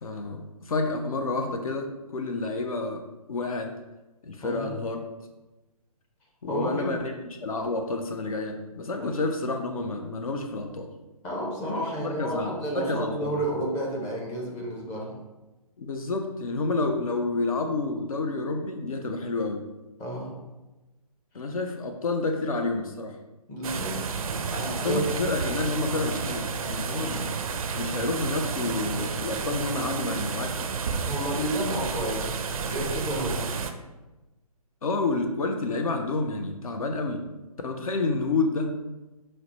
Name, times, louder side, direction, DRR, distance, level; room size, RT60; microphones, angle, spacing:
voice 1, 0.0-3.0 3.3-3.7 4.2-5.0 6.4-7.1 7.4-10.9 12.0-12.5 12.8-13.3 15.8-19.7 21.3-23.2 24.7-27.2 27.7-30.7 34.8-37.2 37.6-38.7, left 3 dB, 65° left, 4 dB, 0.5 m, -29 dB
voice 2, 4.4-4.7 6.5-6.9 9.0-9.2 11.2-15.2 20.0-20.4 23.5-24.0 24.5-25.1 26.9-27.2 31.1-33.7, right 1 dB, 10° left, -3 dB, 0.5 m, -31 dB
sound 1, 23.6-33.7, right 5 dB, 65° right, 0.4 m, -31 dB
5.7 x 2.1 x 2.8 m, 1.1 s
figure-of-eight pair, 140°, 20 cm